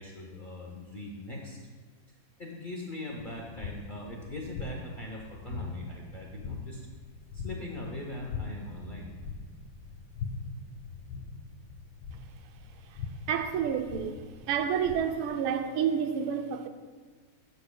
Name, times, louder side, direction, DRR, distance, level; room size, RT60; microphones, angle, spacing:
voice 1, 0.0-1.6 2.4-6.8 7.4-9.1, left 1 dB, 60° left, 0.5 m, -40 dB
sound 1, 3.2-15.3, left 4 dB, 75° left, 1.6 m, -42 dB
voice 2, 13.3-14.2 14.5-16.7, right 8 dB, 85° right, 1.5 m, -29 dB
11.5 x 8.0 x 2.2 m
omnidirectional pair, 2.2 m